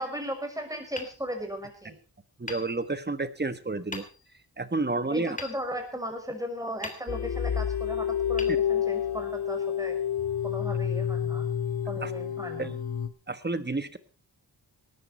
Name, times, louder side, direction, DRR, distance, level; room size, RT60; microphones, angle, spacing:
voice 1, 0.0-1.9 5.1-10.0 10.4-11.5 11.9-12.7, equal, 10° right, 5 dB, 6.1 m, -36 dB
Hammer, 0.9-1.9 2.4-3.4 3.9-4.5 5.4-6.3 6.8-7.6 8.3-9.3, left 2 dB, 20° left, 3.2 m, -43 dB
voice 2, 2.4-4.0 4.6-5.4 8.5-8.6 12.0-12.1 12.6-12.7 13.3-14.0, right 3 dB, 25° right, 12 dB, 1.4 m, -30 dB
sound 1, 7.1-13.1, left 8 dB, 60° left, 1.9 m, -29 dB
18.5 x 14.0 x 4.4 m, 0.35 s
wide cardioid pair, 95°, 43 cm